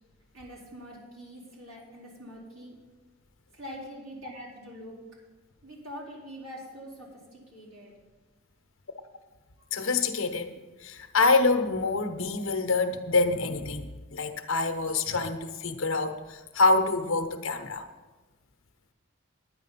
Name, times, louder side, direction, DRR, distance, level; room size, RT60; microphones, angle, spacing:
voice 1, 0.3-2.8 3.5-5.0 5.6-7.9, equal, 80° right, -4 dB, 4.2 m, -44 dB
voice 2, 9.7-10.5 10.8-17.9, left 3 dB, 70° left, 7 dB, 0.9 m, -26 dB
9.9 x 9.9 x 5.7 m, 1.2 s
head